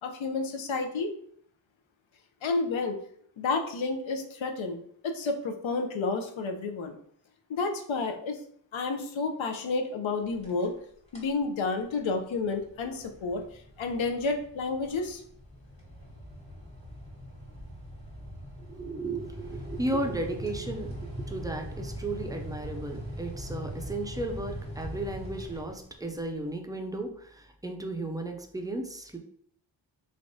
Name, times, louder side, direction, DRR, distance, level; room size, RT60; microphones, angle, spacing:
voice 1, 0.0-1.1 2.4-3.0 3.4-7.0 7.5-8.4 8.7-10.7 11.1-13.4 13.8-15.2, left 3 dB, 80° left, 5 dB, 0.7 m, -30 dB
sound 1, 10.3-10.8 11.1-11.4 11.9-26.2, equal, 15° left, 1.2 m, -41 dB
voice 2, 18.6-29.2, right 2 dB, 10° right, 4 dB, 0.4 m, -35 dB
3.5 x 3.4 x 2.6 m, 0.63 s
wide cardioid pair, 125°, 46 cm